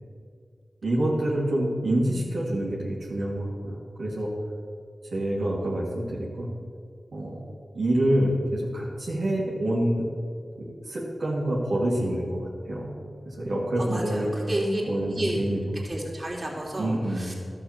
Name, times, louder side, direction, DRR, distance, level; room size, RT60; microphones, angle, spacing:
voice 1, 0.8-4.3 5.1-6.5 7.1-7.4 7.7-10.1 10.6-12.9 13.3-14.3 14.9-15.6 16.8-17.3, right 1 dB, 80° right, -6 dB, 2.5 m, -27 dB
voice 2, 13.8-14.8 15.1-15.4 15.8-17.3, right 1 dB, 40° right, -2 dB, 3.3 m, -31 dB
12.0 x 6.6 x 7.4 m, 2.3 s
cardioid pair, 40°, 0 cm